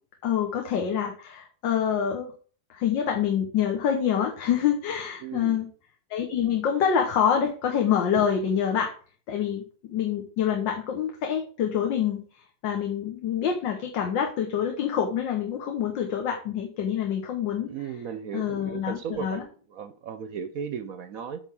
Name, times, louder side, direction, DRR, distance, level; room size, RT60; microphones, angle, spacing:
voice 1, 0.2-2.3 2.7-5.7 6.1-8.9 9.3-12.2 12.6-17.7 18.3-19.4, left 8 dB, 80° left, 3 dB, 1.8 m, -26 dB
voice 2, 5.2-5.6 17.6-21.4, right 7 dB, 65° right, 10 dB, 0.9 m, -36 dB
8.8 x 4.0 x 7.0 m, 0.42 s
omnidirectional pair, 2.0 m